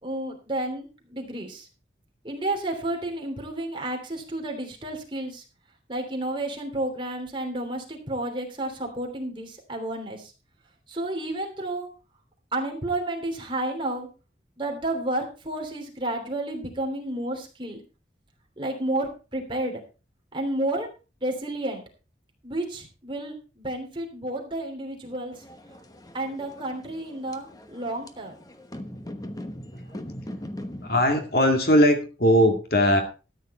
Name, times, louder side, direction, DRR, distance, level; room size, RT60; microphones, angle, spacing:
voice 1, 0.0-1.7 2.2-5.4 5.9-10.3 10.9-11.9 12.5-14.1 14.6-17.8 18.6-19.8 20.3-20.9 21.2-21.8 22.4-25.3 26.1-28.4, right 1 dB, 25° right, 1 dB, 3.1 m, -31 dB
sound 1, 25.3-31.0, left 1 dB, 20° left, 1.1 m, -40 dB
voice 2, 30.8-33.0, equal, 55° left, 5 dB, 2.2 m, -20 dB
13.5 x 9.3 x 4.3 m, 0.33 s
head